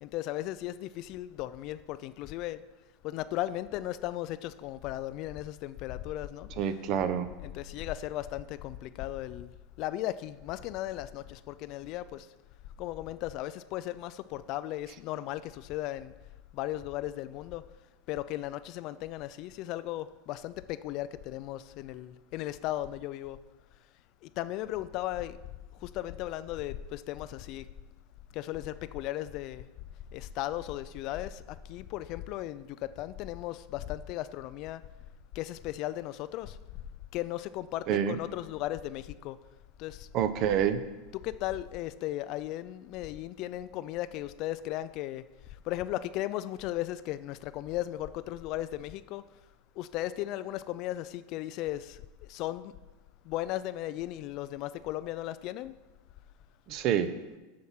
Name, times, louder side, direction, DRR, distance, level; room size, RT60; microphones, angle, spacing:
voice 1, 0.0-2.6 3.0-6.7 7.4-9.5 9.8-12.3 12.8-16.1 16.5-17.6 18.1-23.4 24.2-25.4 25.8-27.7 28.3-29.7 30.1-34.8 35.4-36.6 37.1-39.4 39.8-40.1 41.1-45.2 45.7-49.2 49.8-52.0 52.3-52.7 53.3-55.7, left 14 dB, 40° left, 15 dB, 0.3 m, -36 dB
voice 2, 6.6-7.3 37.9-38.2 40.1-40.8 56.7-57.1, right 9 dB, 40° right, 12 dB, 0.6 m, -27 dB
7.6 x 7.1 x 5.7 m, 1.1 s
supercardioid pair, 160°, 0 cm